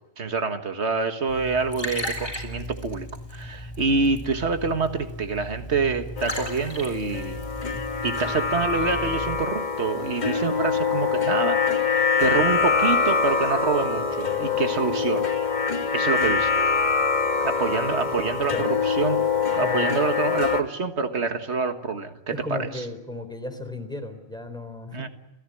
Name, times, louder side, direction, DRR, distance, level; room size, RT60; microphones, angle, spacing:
voice 1, 0.2-7.5 8.0-11.6 11.9-15.3 15.9-16.5 17.4-19.2 19.5-22.8 24.9-25.1, right 4 dB, 85° right, 8 dB, 1.9 m, -26 dB
Liquid, 1.3-9.4, equal, 25° left, 7.0 m, -36 dB
sound 1, 6.2-20.6, left 5 dB, 45° left, 1.5 m, -24 dB
voice 2, 22.3-25.1, left 1 dB, 5° left, 7 dB, 3.8 m, -34 dB
30.0 x 16.0 x 9.9 m, 0.98 s
omnidirectional pair, 1.1 m